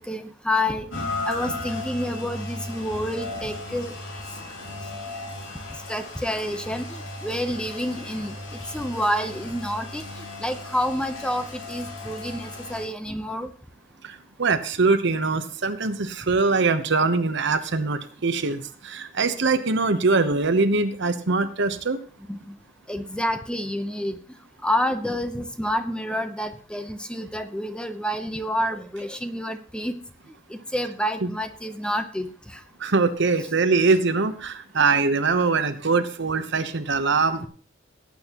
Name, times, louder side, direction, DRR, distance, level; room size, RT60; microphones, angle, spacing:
voice 1, 0.0-3.9 5.7-13.5 22.3-22.6 22.9-24.2 24.6-30.0 30.5-32.6, equal, 5° left, 8 dB, 0.8 m, -29 dB
Rain, 0.9-12.9, left 2 dB, 85° left, 3.2 m, -36 dB
voice 2, 14.4-22.0 31.2-31.3 32.8-37.5, right 4 dB, 65° right, 9 dB, 1.0 m, -22 dB
17.5 x 8.8 x 3.0 m, 0.42 s
head